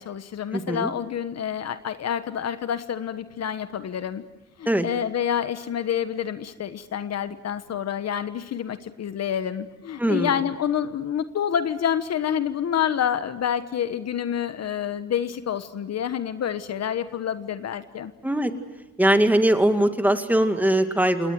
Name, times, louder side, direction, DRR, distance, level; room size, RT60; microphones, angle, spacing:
voice 1, 0.0-4.2 4.6-18.1, left 9 dB, 60° left, 11 dB, 1.3 m, -28 dB
voice 2, 0.5-0.9 4.7-4.8 10.0-10.4 18.2-18.5 19.0-21.3, right 1 dB, 5° right, 7 dB, 2.2 m, -21 dB
27.5 x 19.5 x 7.7 m, 1.0 s
cardioid pair, 90°, 30 cm